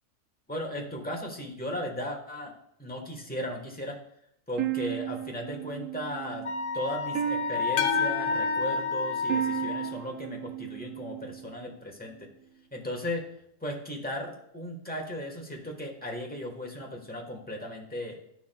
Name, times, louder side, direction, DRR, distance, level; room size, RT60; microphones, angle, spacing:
voice 1, 0.5-2.5 2.8-4.0 4.5-6.5 6.7-12.1 12.7-13.2 13.6-18.2, left 1 dB, 5° left, 0 dB, 1.1 m, -36 dB
sound 1, 4.6-11.7, right 13 dB, 75° right, 1.0 m, -35 dB
Wind instrument woodwind instrument, 6.5-9.9, left 4 dB, 60° left, 1.5 m, -30 dB
sound 2, 7.8-10.0, left 8 dB, 80° left, 1.1 m, -33 dB
12.0 x 5.9 x 2.2 m, 0.75 s
omnidirectional pair, 1.4 m